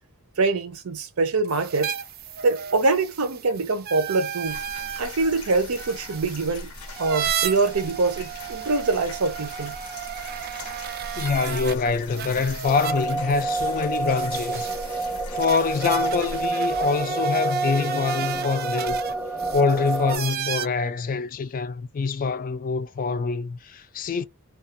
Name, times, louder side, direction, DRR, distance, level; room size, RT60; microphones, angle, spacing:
voice 1, 0.4-1.9 2.4-4.6 5.0-6.7 7.0-9.8, right 3 dB, 80° right, 0.7 m, -24 dB
sound 1, 1.4-11.8 12.1-20.7, right 9 dB, 45° right, 0.4 m, -34 dB
sound 2, 4.4-16.5, left 3 dB, 90° left, 0.6 m, -40 dB
voice 2, 11.2-14.7 15.0-19.0 19.5-24.2, left 5 dB, 40° left, 0.4 m, -25 dB
sound 3, 12.6-20.2, right 3 dB, 5° right, 0.8 m, -28 dB
2.4 x 2.3 x 2.5 m
head